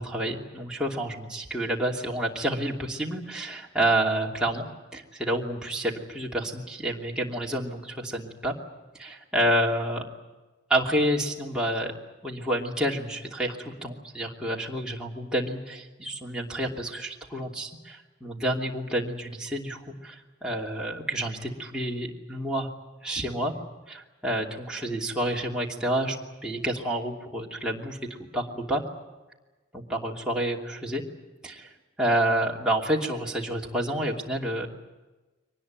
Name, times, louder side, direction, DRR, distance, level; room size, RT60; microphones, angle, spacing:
voice 1, 0.0-4.6 4.9-8.5 9.0-10.0 10.7-11.9 12.2-22.7 23.0-23.5 23.9-26.2 26.4-28.0 28.3-28.8 29.7-31.0 31.4-31.7 32.0-34.7, right 1 dB, 5° right, -3 dB, 2.8 m, -29 dB
24.0 x 19.5 x 9.3 m, 1.2 s
head